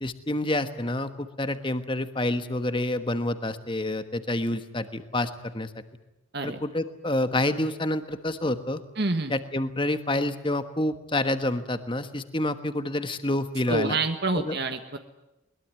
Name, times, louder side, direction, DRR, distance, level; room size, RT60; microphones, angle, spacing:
voice 1, 0.0-5.7 6.4-8.8 9.3-14.0 14.3-14.6, left 1 dB, 25° left, 10 dB, 1.3 m, -28 dB
voice 2, 9.0-9.3 13.7-15.0, right 3 dB, 50° right, 7 dB, 1.4 m, -27 dB
22.0 x 21.5 x 9.6 m, 0.91 s
head